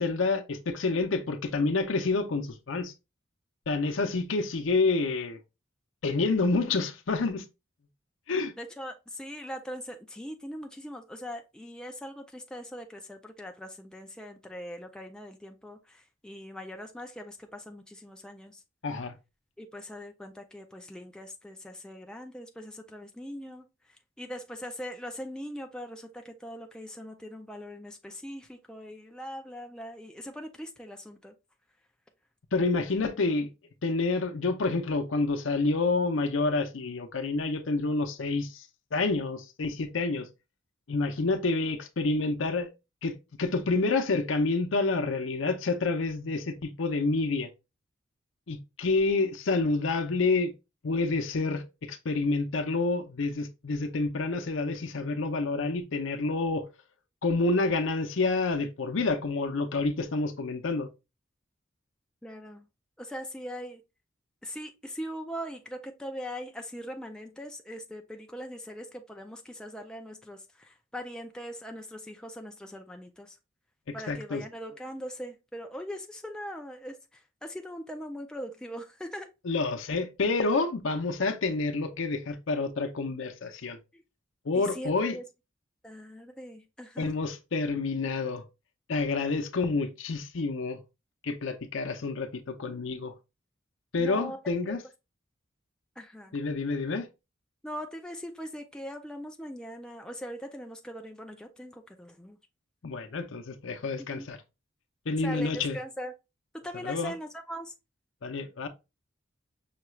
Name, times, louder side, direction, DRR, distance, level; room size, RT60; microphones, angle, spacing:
voice 1, 0.0-2.9 3.7-5.4 6.0-7.4 8.3-8.5 18.8-19.1 32.5-33.5 33.8-38.6 38.9-40.3 40.9-42.7 43.0-47.5 48.5-50.5 50.8-56.6 57.2-60.9 73.9-74.4 79.4-83.8 84.5-85.2 87.0-88.4 88.9-90.8 91.2-93.1 93.9-94.8 96.3-97.1 102.8-104.4 105.1-105.8 106.8-107.1 108.2-108.7, left 3 dB, 70° left, 0.6 m, -28 dB
voice 2, 8.6-18.6 19.6-23.7 24.2-31.3 62.2-62.7 63.0-63.8 64.4-73.4 73.9-79.3 83.9-84.0 84.6-85.2 85.8-87.1 94.0-94.8 96.0-96.4 97.6-102.4 104.0-104.3 105.2-106.1 106.6-107.7, equal, 5° left, 0.3 m, -41 dB
5.7 x 2.3 x 3.0 m
head